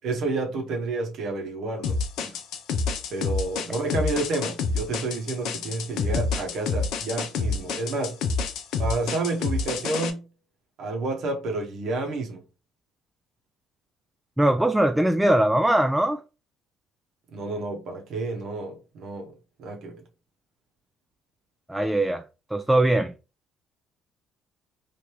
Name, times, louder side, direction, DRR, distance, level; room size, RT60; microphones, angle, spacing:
voice 1, 0.0-2.4 3.1-8.2 8.8-10.2 10.8-12.4 17.3-19.3 19.6-20.0, right 2 dB, 65° right, 0.8 m, -30 dB
sound 1, 1.8-10.1, left 4 dB, 75° left, 0.5 m, -28 dB
voice 2, 14.4-16.2 21.7-22.2 22.5-23.1, right 1 dB, 10° right, 0.3 m, -21 dB
3.1 x 2.5 x 3.0 m
supercardioid pair, 65°, 0 cm